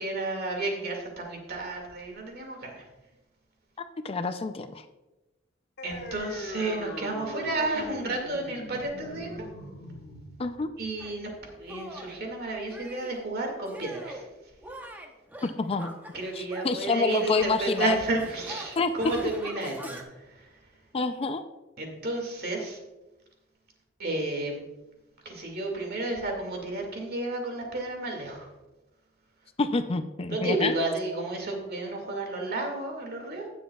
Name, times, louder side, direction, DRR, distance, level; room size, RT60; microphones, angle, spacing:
voice 1, 0.0-2.8 5.8-9.5 10.8-11.3 11.6-14.3 16.1-20.6 21.8-22.8 24.0-24.6 25.2-28.5 30.3-33.5, right 2 dB, 55° right, 1 dB, 2.2 m, -32 dB
voice 2, 4.0-4.8 10.4-10.7 15.4-15.9 16.3-18.0 18.8-18.9 20.9-21.4 29.6-30.7, left 3 dB, 30° left, 9 dB, 0.4 m, -27 dB
sound 1, 5.8-12.8, left 1 dB, 60° left, 1.4 m, -41 dB
Shatter, 11.0-11.2 11.7-12.2 12.7-13.3 13.7-14.3 14.6-16.8 17.1-20.0, equal, 10° right, 0.9 m, -44 dB
16.5 x 7.2 x 2.3 m, 1.0 s
head